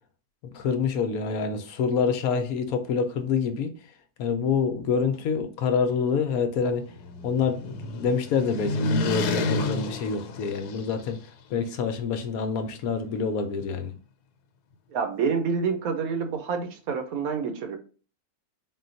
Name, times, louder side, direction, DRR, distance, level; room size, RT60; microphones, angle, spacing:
voice 1, 0.4-3.7 4.2-7.0 7.2-13.9, left 5 dB, 70° left, 1.0 m, -27 dB
sound 1, 6.4-11.2, left 3 dB, 90° left, 1.2 m, -30 dB
voice 2, 14.9-17.8, right 6 dB, 70° right, 1.1 m, -28 dB
4.2 x 2.2 x 3.9 m
omnidirectional pair, 1.7 m